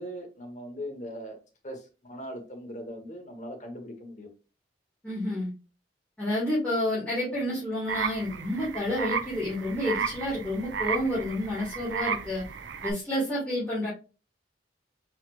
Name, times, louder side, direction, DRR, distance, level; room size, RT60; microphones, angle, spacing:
voice 1, 0.0-1.4 1.6-4.3, equal, 40° left, 1.3 m, -40 dB
voice 2, 5.0-5.5 6.2-12.4 12.8-13.9, left 1 dB, 5° left, 2.0 m, -29 dB
sound 1, 7.9-12.9, right 6 dB, 85° right, 0.5 m, -33 dB
4.6 x 4.2 x 2.5 m
head